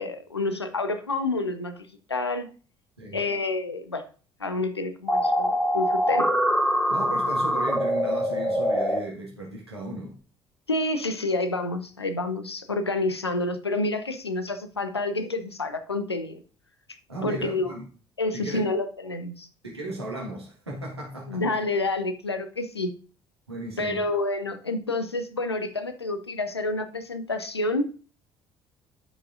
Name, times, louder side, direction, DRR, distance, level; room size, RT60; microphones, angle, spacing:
voice 1, 0.0-2.5 3.1-4.1 4.4-6.3 10.7-16.4 17.2-17.7 18.2-19.5 21.3-22.9 23.8-27.9, left 2 dB, 90° left, 9 dB, 0.6 m, -28 dB
sound 1, 5.1-9.0, equal, 10° left, 1.5 m, -24 dB
voice 2, 6.9-10.2 17.1-17.8 18.3-18.6 19.6-21.4 23.5-24.0, right 2 dB, 85° right, -4 dB, 1.5 m, -35 dB
12.0 x 4.9 x 2.6 m, 0.37 s
figure-of-eight pair, 50°, 13 cm